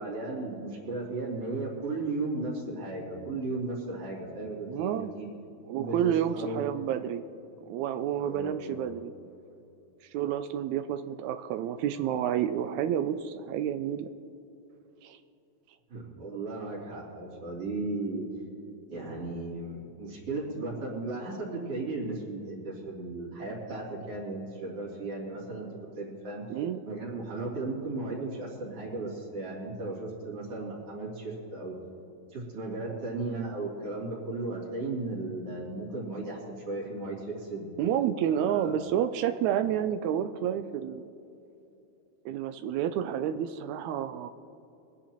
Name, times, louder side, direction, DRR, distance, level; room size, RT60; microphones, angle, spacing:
voice 1, 0.0-5.3 5.8-6.6 8.2-8.8 15.9-18.3 18.9-25.7 26.0-26.4 26.9-31.8 32.3-37.7 38.3-38.8, right 2 dB, 55° right, -6 dB, 3.8 m, -35 dB
voice 2, 4.7-5.1 5.7-7.2 7.7-9.1 10.1-14.1 15.0-15.2 26.5-26.8 37.8-41.1 42.3-44.3, right 10 dB, 85° right, 9 dB, 1.9 m, -30 dB
24.0 x 9.8 x 3.0 m, 2.7 s
omnidirectional pair, 3.3 m